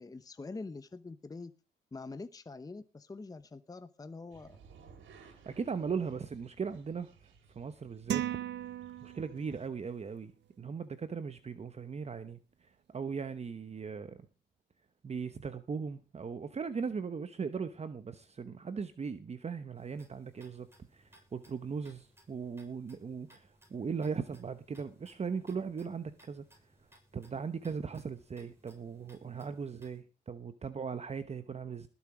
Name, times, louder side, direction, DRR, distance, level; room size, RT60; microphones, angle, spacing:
voice 1, 0.0-1.5 1.9-4.6, left 3 dB, 20° left, 0.8 m, -45 dB
sound 1, 4.3-9.7, right 5 dB, 80° right, 3.4 m, -59 dB
voice 2, 5.2-7.1 7.5-8.2 9.0-10.3 10.6-14.2 15.0-20.7 20.9-26.4 27.1-31.9, right 5 dB, 35° right, 1.0 m, -38 dB
sound 2, 8.1-9.6, right 12 dB, 65° right, 0.7 m, -36 dB
sound 3, 19.8-30.0, right 1 dB, 10° right, 7.1 m, -64 dB
20.0 x 7.2 x 4.9 m
cardioid pair, 90°, 20 cm